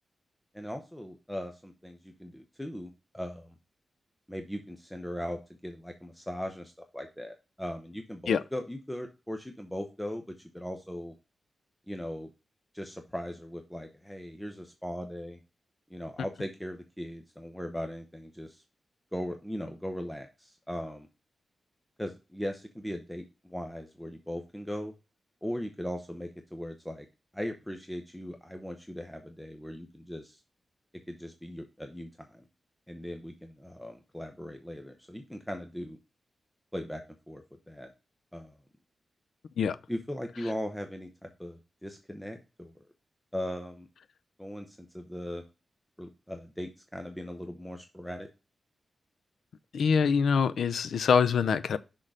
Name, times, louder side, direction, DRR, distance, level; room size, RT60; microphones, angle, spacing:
voice 1, 0.5-3.5 4.3-11.1 11.9-12.3 12.7-15.4 15.9-18.6 19.1-21.1 22.0-24.9 25.4-27.1 27.3-30.4 31.1-32.4 32.9-36.0 36.7-37.9 38.3-38.5 39.9-42.7 43.3-43.9 44.4-45.4 46.0-48.3, equal, 5° left, 0.8 m, -39 dB
voice 2, 49.7-51.8, left 6 dB, 85° left, 0.5 m, -24 dB
6.5 x 3.8 x 4.9 m
wide cardioid pair, 130°, 0 cm